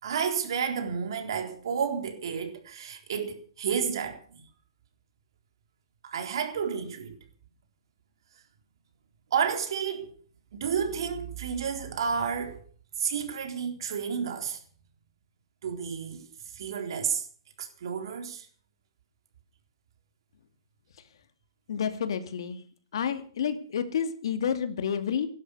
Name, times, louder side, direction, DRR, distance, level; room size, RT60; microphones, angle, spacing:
voice 1, 0.0-4.4 6.0-7.2 9.3-10.1 10.5-12.6 13.0-14.6 15.6-16.3 16.5-17.3 17.6-18.5, right 7 dB, 55° right, 3.9 m, -31 dB
voice 2, 21.7-22.6 22.9-25.3, left 7 dB, 60° left, 2.5 m, -29 dB
16.5 x 12.0 x 6.6 m
hypercardioid pair, 165°, 3 cm